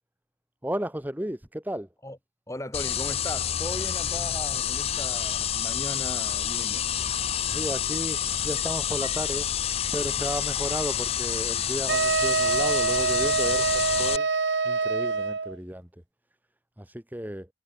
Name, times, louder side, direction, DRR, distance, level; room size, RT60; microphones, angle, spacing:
voice 1, 0.6-1.9 7.5-9.5 9.9-14.3 14.6-15.9 16.8-17.5, right 1 dB, 10° right, 1.2 m, -33 dB
voice 2, 2.5-6.9, left 1 dB, 15° left, 3.4 m, -37 dB
sound 1, 2.7-14.2, left 10 dB, 30° left, 0.4 m, -28 dB
sound 2, 11.9-15.5, right 4 dB, 70° right, 1.0 m, -25 dB
head